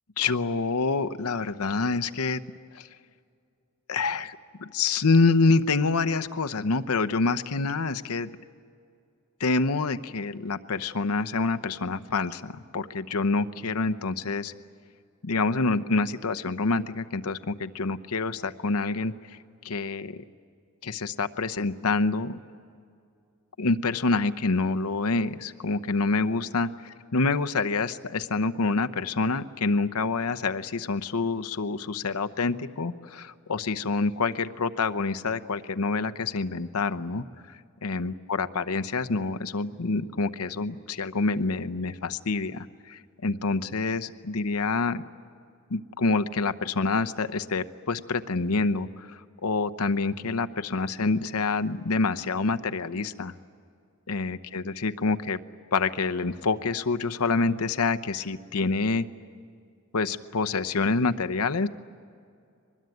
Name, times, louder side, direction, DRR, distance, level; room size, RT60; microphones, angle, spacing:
voice 1, 0.2-2.4 2.7-2.9 3.9-4.4 4.6-8.3 9.4-14.5 15.2-19.1 19.6-20.2 20.8-22.4 23.6-26.7 27.1-37.2 37.8-45.0 45.7-53.3 54.1-55.4 55.7-59.1 59.9-61.7, left 3 dB, 85° left, 9 dB, 0.9 m, -27 dB
24.0 x 21.0 x 9.4 m, 2.3 s
head